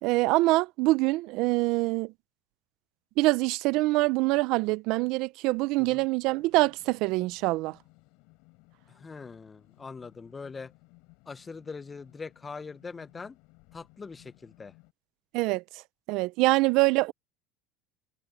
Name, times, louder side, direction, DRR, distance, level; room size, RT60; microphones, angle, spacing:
voice 1, 0.0-2.1 3.2-7.8 15.3-15.6 16.1-17.1, right 21 dB, 65° right, 0.6 m, -25 dB
sound 1, 6.2-14.9, left 28 dB, 70° left, 5.5 m, -60 dB
voice 2, 8.9-10.7 11.3-13.4 13.7-14.7, left 4 dB, 20° left, 0.8 m, -42 dB
supercardioid pair, 100°, 0 cm